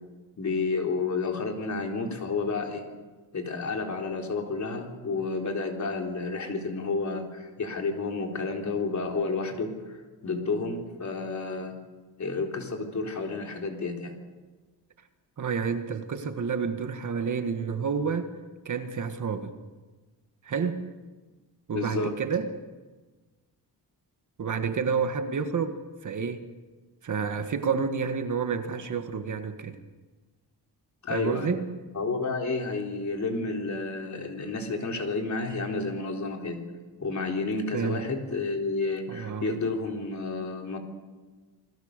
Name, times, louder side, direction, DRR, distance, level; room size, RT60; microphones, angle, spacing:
voice 1, 0.4-2.8 3.3-10.0 10.2-11.8 12.2-14.2 21.7-22.1 31.0-31.5 31.9-36.6 37.0-40.8, left 3 dB, 45° left, 2 dB, 3.9 m, -30 dB
voice 2, 15.4-18.3 18.7-19.5 20.4-20.9 21.7-22.5 24.4-26.5 27.0-29.8 31.1-31.7 37.7-38.1 39.1-39.6, right 6 dB, 50° right, 7 dB, 1.8 m, -29 dB
29.0 x 21.0 x 6.8 m, 1.3 s
wide cardioid pair, 175°, 39 cm